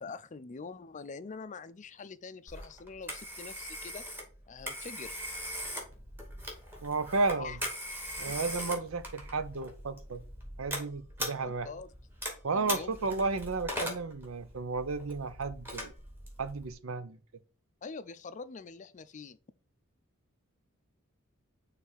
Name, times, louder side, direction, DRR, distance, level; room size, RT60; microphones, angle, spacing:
voice 1, 0.0-4.0 4.5-5.1 7.4-7.6 11.4-11.9 12.5-13.0 17.8-19.4, left 4 dB, 35° left, 0.5 m, -44 dB
Telephone, 2.5-16.7, equal, 10° right, 2.3 m, -41 dB
voice 2, 6.8-7.5 8.2-10.2 10.6-11.7 12.4-15.9 16.4-17.2, right 3 dB, 75° right, 0.6 m, -33 dB
6.4 x 3.3 x 5.5 m
head